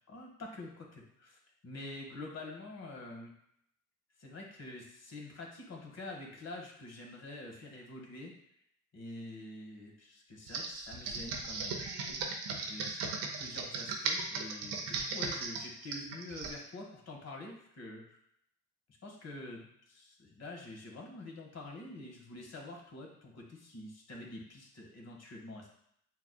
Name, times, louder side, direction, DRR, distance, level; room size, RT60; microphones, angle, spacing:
voice 1, 0.1-3.3 4.2-8.3 8.9-12.2 12.5-13.1 13.3-18.2 19.0-25.7, left 2 dB, 50° left, 0 dB, 1.5 m, -47 dB
Computer keyboard, 10.5-16.6, right 4 dB, 85° right, 0.8 m, -37 dB
7.3 x 2.5 x 2.3 m, 0.71 s
supercardioid pair, 65°, 33 cm